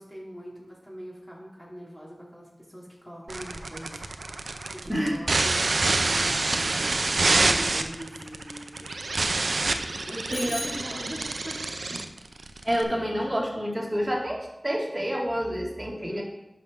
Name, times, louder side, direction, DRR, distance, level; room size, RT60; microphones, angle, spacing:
voice 1, 0.0-8.9 9.5-11.6 16.0-16.2, equal, 20° left, -5 dB, 2.7 m, -42 dB
sound 1, 3.3-12.8, right 3 dB, 90° right, 0.5 m, -27 dB
Bicycle bell, 10.3-11.6, left 1 dB, 70° left, 2.1 m, -38 dB
voice 2, 10.3-10.6 12.6-16.2, equal, 20° right, -3 dB, 2.4 m, -28 dB
10.5 x 6.0 x 3.6 m, 0.97 s
wide cardioid pair, 45°, 0 cm